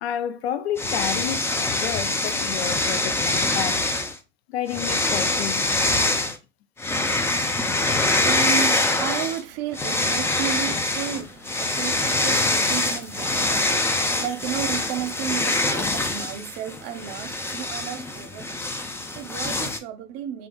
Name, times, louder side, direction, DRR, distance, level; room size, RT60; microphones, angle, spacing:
voice 1, 0.0-3.9 4.5-5.7, left 10 dB, 80° left, 0.5 m, -30 dB
sound 1, 0.8-4.2 4.7-6.4 6.8-9.4 9.7-19.8, left 2 dB, 10° left, 0.3 m, -24 dB
voice 2, 7.8-20.5, right 10 dB, 60° right, 0.6 m, -33 dB
2.7 x 2.4 x 3.5 m
hypercardioid pair, 80°, 31 cm